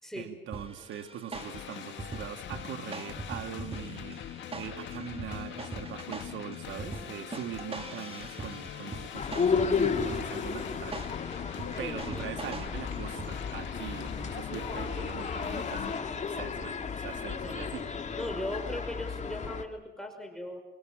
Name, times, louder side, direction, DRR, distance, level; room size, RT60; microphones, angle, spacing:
voice 1, 0.2-11.0 11.8-16.0 16.3-17.9, right 10 dB, 75° right, 8 dB, 2.1 m, -42 dB
sound 1, 0.5-13.7, right 3 dB, 30° right, 2.4 m, -43 dB
sound 2, 1.3-16.0, left 10 dB, 70° left, 1.6 m, -42 dB
sound 3, 9.1-19.6, left 5 dB, 35° left, 2.7 m, -33 dB
voice 2, 11.8-12.2 17.4-17.7 18.2-20.6, left 1 dB, ahead, 2 dB, 5.5 m, -38 dB
28.0 x 24.5 x 7.5 m, 0.97 s
cardioid pair, 90°, 20 cm